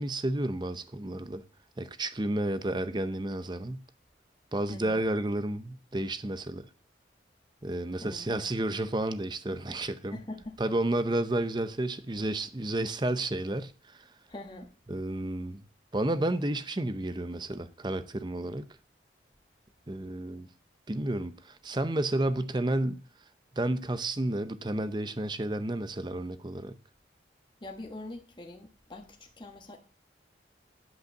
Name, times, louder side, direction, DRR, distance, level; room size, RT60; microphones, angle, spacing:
voice 1, 0.0-1.4 1.8-3.8 4.5-6.7 7.6-10.2 10.6-14.0 14.9-15.6 15.9-18.7 19.9-20.5 20.9-23.0 23.6-26.8, right 1 dB, 25° right, 0.6 m, -31 dB
voice 2, 4.7-5.0 8.0-8.5 10.1-10.7 14.3-14.7 27.6-29.8, left 2 dB, 25° left, 1.4 m, -43 dB
10.5 x 5.6 x 6.6 m
head